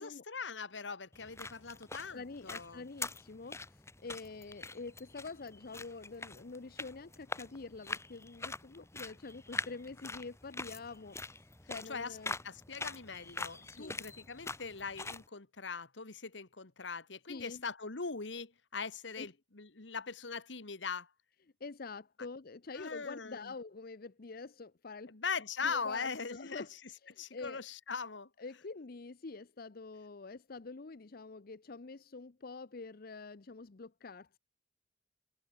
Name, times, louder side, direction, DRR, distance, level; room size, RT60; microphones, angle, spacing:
voice 1, 0.0-2.8 11.9-21.1 22.7-23.5 25.1-26.7 27.2-28.3, left 5 dB, 80° left, 1.7 m, -41 dB
sound 1, 1.1-15.3, left 3 dB, 15° left, 1.6 m, -44 dB
voice 2, 2.1-11.2 11.7-12.4 13.6-14.0 17.3-17.6 19.2-19.3 21.6-25.2 25.6-27.6 28.4-34.4, left 3 dB, 55° left, 0.7 m, -46 dB
head